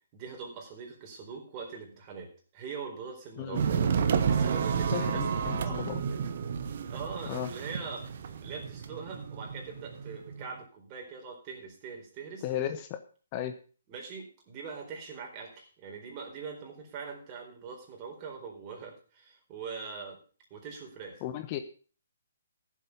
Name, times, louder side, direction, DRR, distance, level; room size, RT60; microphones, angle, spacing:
voice 1, 0.1-3.8 4.3-5.9 6.9-8.1 8.4-12.5 13.9-20.2 20.5-21.2, right 5 dB, 30° right, 1 dB, 4.2 m, -42 dB
sound 1, 3.5-10.4, right 6 dB, 50° right, 1.1 m, -31 dB
voice 2, 4.9-6.0 7.3-7.5 12.4-13.0 13.3-13.6 21.2-21.6, left 11 dB, 30° left, 8 dB, 0.9 m, -34 dB
14.5 x 7.5 x 5.5 m, 0.40 s
figure-of-eight pair, 135°, 0 cm